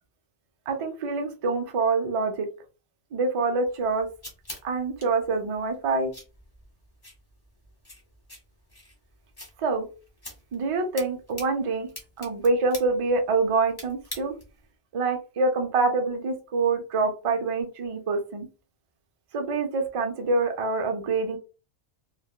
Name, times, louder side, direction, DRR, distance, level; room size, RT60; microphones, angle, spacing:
voice 1, 0.7-2.5 3.1-4.1 4.6-6.1 9.6-9.9 10.5-11.9 12.2-14.3 14.9-18.5 19.3-21.4, right 3 dB, 50° right, 5 dB, 0.4 m, -26 dB
sound 1, 3.6-14.7, left 1 dB, 25° left, 0.8 m, -46 dB
3.5 x 2.0 x 2.2 m, 0.34 s
omnidirectional pair, 1.2 m